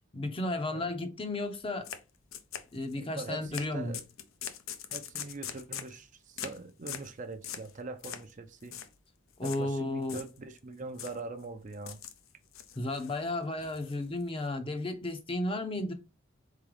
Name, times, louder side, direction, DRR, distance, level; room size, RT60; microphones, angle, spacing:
voice 1, 0.1-1.9 2.7-4.0 9.4-10.2 12.8-15.9, left 2 dB, 25° left, 0.6 m, -33 dB
sound 1, 1.8-2.0 2.3-3.0 3.5-3.7 3.9-6.0 6.4-6.6 6.9-7.1 7.4-7.7 8.0-8.3 8.6-8.9 9.4-9.6 10.0-10.6 11.0-11.2 11.7-12.2 12.5-13.2 13.6-14.4, left 9 dB, 75° left, 0.5 m, -41 dB
voice 2, 3.0-4.0 4.9-8.8 9.4-12.0, right 3 dB, 40° right, 0.5 m, -42 dB
3.9 x 3.7 x 3.2 m
head